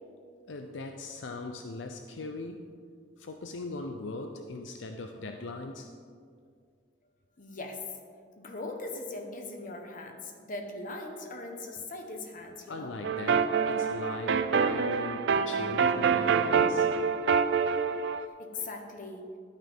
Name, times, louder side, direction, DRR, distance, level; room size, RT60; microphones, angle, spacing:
voice 1, 0.5-2.6 3.2-5.9 12.7-16.9, left 3 dB, 75° left, 5 dB, 0.6 m, -39 dB
voice 2, 7.4-7.8 8.4-12.9 18.2-19.3, left 2 dB, 45° left, 3 dB, 1.1 m, -40 dB
sound 1, 13.0-18.3, right 6 dB, 70° right, 0.4 m, -26 dB
12.0 x 9.1 x 3.6 m, 2.1 s
head